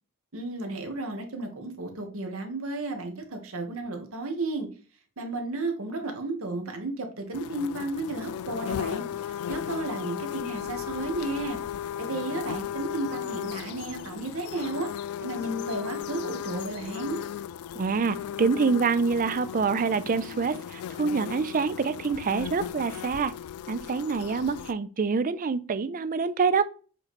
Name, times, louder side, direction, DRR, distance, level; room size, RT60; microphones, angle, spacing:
voice 1, 0.3-4.7 5.2-11.6 12.0-14.9 15.2-17.2, right 2 dB, 70° right, 1.4 m, -33 dB
sound 1, 7.3-24.7, left 9 dB, 80° left, 0.3 m, -36 dB
voice 2, 17.8-23.3 23.7-26.7, right 5 dB, 40° right, 0.4 m, -26 dB
7.5 x 3.2 x 4.2 m
head